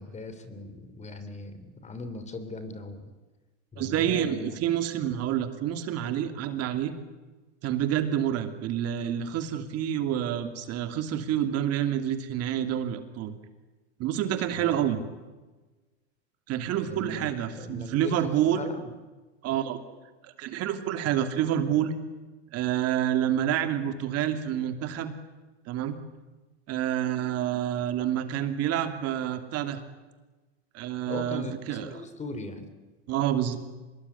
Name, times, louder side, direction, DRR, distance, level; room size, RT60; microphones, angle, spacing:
voice 1, 0.0-3.1 3.7-4.6 14.5-15.0 16.8-18.9 31.1-32.7, left 2 dB, 20° left, 11 dB, 3.3 m, -39 dB
voice 2, 3.8-6.9 7.6-13.3 14.0-15.0 16.5-18.6 19.4-19.8 20.2-21.9 22.5-25.1 25.7-26.0 26.7-29.8 30.7-31.9 33.1-33.6, right 10 dB, 45° right, 9 dB, 2.8 m, -28 dB
25.5 x 21.0 x 9.8 m, 1.2 s
supercardioid pair, 130°, 34 cm